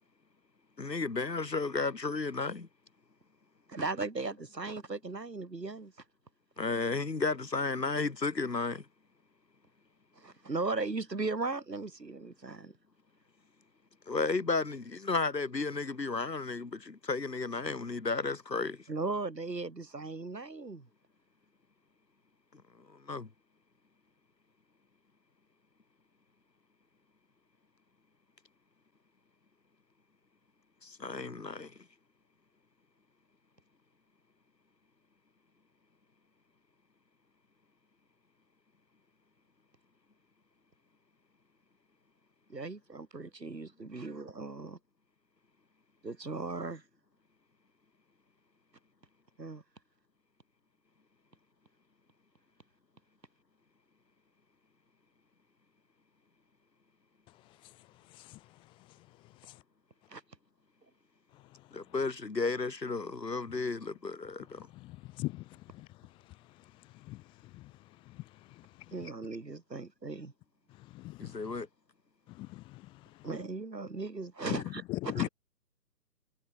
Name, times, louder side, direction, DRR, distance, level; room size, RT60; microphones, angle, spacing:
voice 1, 0.8-2.7 6.6-8.8 14.1-18.8 22.9-23.3 30.8-31.7 61.7-64.7 71.2-71.7, left 3 dB, 80° left, 2.6 m, -33 dB
voice 2, 3.7-5.9 10.2-12.8 18.9-20.9 42.5-44.8 46.0-46.8 49.4-49.6 60.1-60.2 68.9-70.3 73.2-75.3, right 3 dB, 80° right, 3.7 m, -37 dB
voice 3, 64.7-65.4 65.7-65.9 67.0-67.2 67.5-67.7 68.1-68.2 70.9-71.4 72.3-72.9 74.5-74.6 74.9-75.3, left 19 dB, 10° left, 1.6 m, -38 dB
figure-of-eight pair, 140°, 49 cm